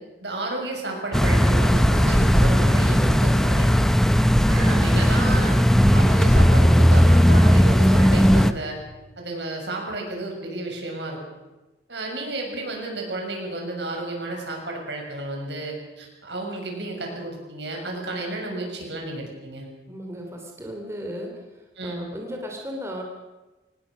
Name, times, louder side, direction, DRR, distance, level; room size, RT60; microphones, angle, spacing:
voice 1, 0.2-3.9 4.5-5.6 5.9-8.8 9.2-11.2 11.9-19.7 21.8-22.1, right 2 dB, 70° right, 1 dB, 6.4 m, -32 dB
sound 1, 1.1-8.5, equal, ahead, 0.7 m, -17 dB
voice 2, 19.9-21.4 21.8-23.0, equal, 15° right, 1 dB, 3.0 m, -35 dB
25.0 x 19.0 x 6.3 m, 1.1 s
head